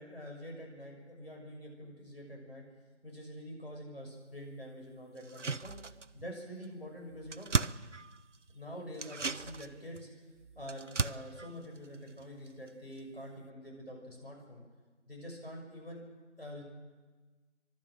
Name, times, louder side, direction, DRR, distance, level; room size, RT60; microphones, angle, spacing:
voice 1, 0.0-2.6 3.0-5.7 6.1-7.5 8.5-10.1 10.5-14.6 15.1-16.0 16.4-16.6, equal, 50° left, 0 dB, 6.2 m, -46 dB
sound 1, 5.2-6.3 6.6-6.7 7.0-8.5 8.9-12.7 13.0-13.1, right 4 dB, 80° right, 0.8 m, -37 dB
29.0 x 12.5 x 7.8 m, 1.3 s
figure-of-eight pair, 180°, 36 cm